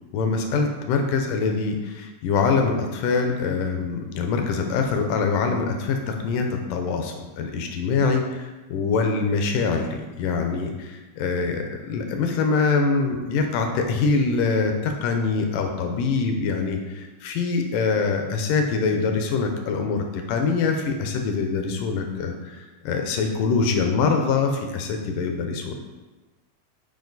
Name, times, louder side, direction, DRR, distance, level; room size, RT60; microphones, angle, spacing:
voice 1, 0.1-25.7, left 4 dB, 80° left, 4 dB, 1.9 m, -24 dB
7.4 x 4.9 x 3.9 m, 1.2 s
omnidirectional pair, 4.5 m